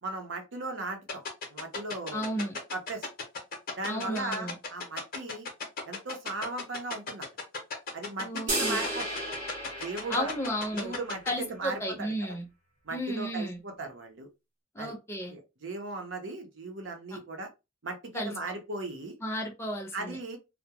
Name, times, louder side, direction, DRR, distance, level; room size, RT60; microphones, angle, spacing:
voice 1, 0.0-1.2 1.5-2.3 2.7-3.1 3.8-5.5 5.9-7.3 7.9-9.1 9.8-10.3 10.7-12.4 12.8-14.3 14.8-14.9 15.3-17.5 17.8-19.1 19.9-20.4, right 3 dB, 70° right, 0.7 m, -37 dB
sound 1, 1.1-11.3, left 4 dB, 50° left, 0.8 m, -35 dB
voice 2, 2.1-2.6 3.9-4.5 8.2-8.8 10.1-10.9 11.3-12.5 12.9-13.6 14.7-15.4 18.1-18.3 19.2-20.2, equal, 15° left, 0.6 m, -33 dB
sound 2, 8.5-11.0, right 1 dB, 40° right, 1.0 m, -34 dB
2.3 x 2.1 x 2.8 m
head